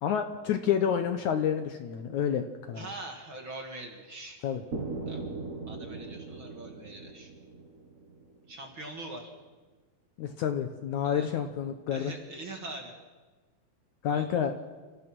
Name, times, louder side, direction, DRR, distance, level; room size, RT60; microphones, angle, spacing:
voice 1, 0.0-2.9 4.4-4.6 10.2-12.1 14.0-14.5, left 8 dB, 70° left, 7 dB, 2.0 m, -29 dB
voice 2, 2.7-4.4 5.1-5.2 5.7-7.3 8.5-9.3 11.0-11.3 11.9-12.9 14.1-14.3, right 2 dB, 40° right, 2 dB, 2.3 m, -42 dB
sound 1, 4.7-8.6, right 3 dB, 85° right, 0.7 m, -39 dB
30.0 x 15.0 x 6.1 m, 1.3 s
omnidirectional pair, 4.2 m